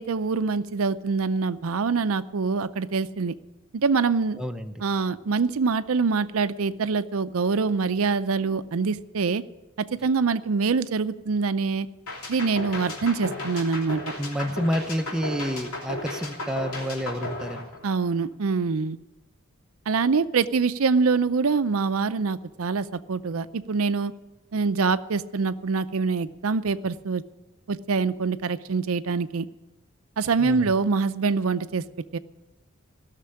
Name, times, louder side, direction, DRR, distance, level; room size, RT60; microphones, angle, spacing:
voice 1, 0.0-3.3 3.7-4.4 4.8-9.4 9.8-11.9 12.3-14.0 17.8-19.0 19.9-24.1 24.5-27.2 27.7-29.5 30.2-31.8 32.1-32.2, right 4 dB, 70° right, 12 dB, 0.5 m, -25 dB
voice 2, 4.4-4.8 14.2-17.7 30.4-30.7, equal, 5° right, 5 dB, 0.6 m, -29 dB
sound 1, 12.1-18.3, left 1 dB, 85° left, 3.1 m, -34 dB
16.0 x 6.7 x 9.8 m, 1.0 s
head